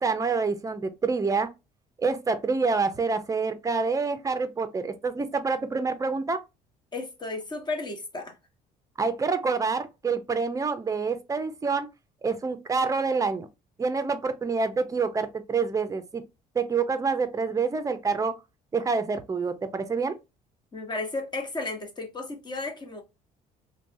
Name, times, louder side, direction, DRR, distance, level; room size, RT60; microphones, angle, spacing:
voice 1, 0.0-1.5 2.0-6.4 9.0-11.9 12.2-13.5 13.8-16.2 16.5-18.3 18.7-20.1, right 4 dB, 20° right, 0.6 m, -27 dB
voice 2, 6.9-8.4 20.7-23.0, left 3 dB, 25° left, 1.1 m, -33 dB
3.3 x 2.3 x 2.6 m
cardioid pair, 110°, 17 cm